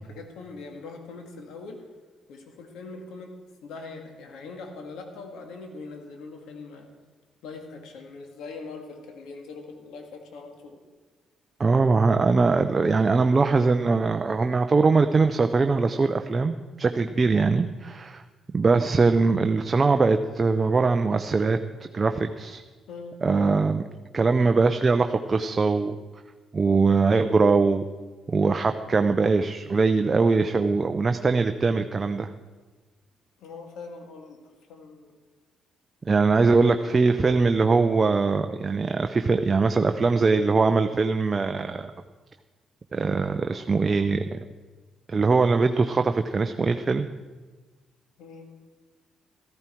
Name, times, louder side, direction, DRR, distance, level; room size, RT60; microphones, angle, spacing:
voice 1, 0.1-1.8 2.3-3.3 3.6-6.9 7.4-10.8 22.9-23.2 33.4-34.4 34.7-35.1 36.8-37.0 48.2-48.5, left 4 dB, 85° left, 4 dB, 2.1 m, -41 dB
voice 2, 11.6-18.2 18.5-21.6 21.9-22.6 23.2-23.8 24.1-26.0 26.5-27.8 28.3-32.3 36.1-41.9 42.9-44.4 45.1-47.1, right 4 dB, 30° right, 7 dB, 0.6 m, -22 dB
14.0 x 14.0 x 4.6 m, 1.3 s
cardioid pair, 90°, 0 cm